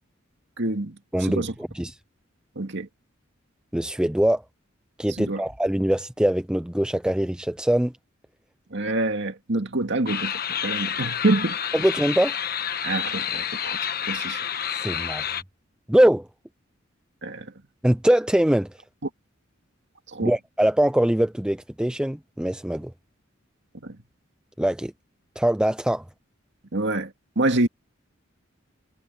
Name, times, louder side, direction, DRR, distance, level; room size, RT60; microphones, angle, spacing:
voice 1, 0.6-1.5 2.6-2.9 5.2-5.4 8.7-10.3 10.6-11.6 12.8-13.8 14.1-14.4 17.2-17.5 20.1-20.3 23.8-24.0 26.7-27.7, right 2 dB, 65° right, 2.1 m, -26 dB
voice 2, 1.1-2.0 3.7-4.4 5.0-7.9 11.7-12.4 14.7-15.2 15.9-16.3 17.8-18.8 20.2-22.9 24.6-24.9 25.4-26.0, right 1 dB, 5° right, 0.4 m, -22 dB
sound 1, 10.1-15.4, left 9 dB, 50° left, 1.1 m, -29 dB
head